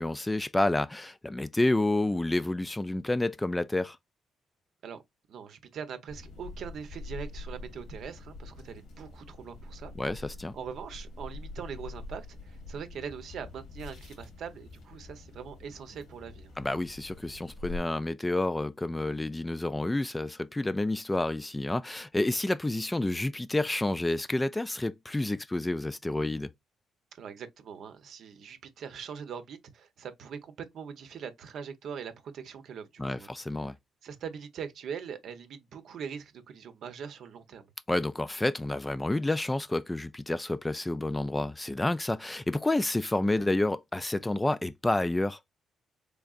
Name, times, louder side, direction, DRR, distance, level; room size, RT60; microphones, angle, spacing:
voice 1, 0.0-4.0 10.0-10.6 16.6-26.5 33.0-33.7 37.9-45.4, left 2 dB, 15° left, 0.3 m, -29 dB
voice 2, 5.3-9.9 10.5-16.5 27.2-33.3 34.0-37.7, right 7 dB, 70° right, 0.7 m, -42 dB
sound 1, 6.1-17.8, left 3 dB, 90° left, 1.5 m, -45 dB
3.6 x 3.4 x 2.4 m
cardioid pair, 90°, 0 cm